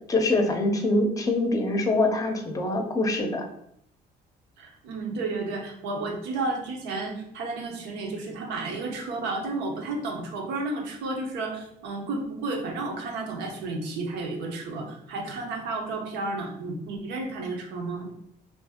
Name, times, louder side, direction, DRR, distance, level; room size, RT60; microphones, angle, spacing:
voice 1, 0.0-3.5, left 2 dB, 20° left, 4 dB, 0.6 m, -24 dB
voice 2, 4.6-18.1, right 3 dB, 90° right, 2 dB, 0.8 m, -32 dB
2.8 x 2.6 x 3.5 m, 0.74 s
cardioid pair, 110°, 17 cm